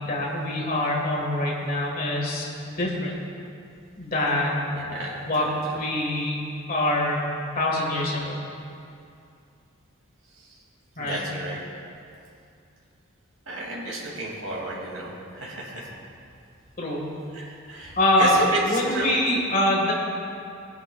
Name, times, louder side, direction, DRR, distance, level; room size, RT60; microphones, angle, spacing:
voice 1, 0.0-3.1 4.0-4.7 5.2-7.2 7.5-8.4 11.0-11.2 16.8-17.0 18.0-18.4 18.7-19.9, left 1 dB, 40° left, -3 dB, 1.7 m, -24 dB
voice 2, 4.7-5.8 10.3-10.6 11.0-11.6 13.5-15.9 17.3-19.2, right 2 dB, 80° right, -4 dB, 2.6 m, -33 dB
17.5 x 10.0 x 2.4 m, 2.5 s
head